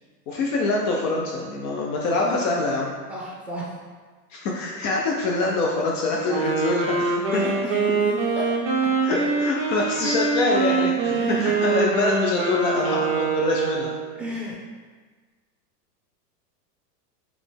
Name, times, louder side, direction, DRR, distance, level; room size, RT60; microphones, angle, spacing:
voice 1, 0.3-2.9 4.3-7.4 9.0-13.9, left 3 dB, 50° left, -1 dB, 0.7 m, -25 dB
voice 2, 3.1-3.8 7.3-8.5 8.8-8.9 11.1-11.5 14.1-14.6, right 1 dB, ahead, -4 dB, 1.0 m, -33 dB
Wind instrument woodwind instrument, 6.2-14.2, right 4 dB, 30° right, 0.4 m, -24 dB
4.0 x 3.4 x 3.4 m, 1.4 s
hypercardioid pair, 120°, 49 cm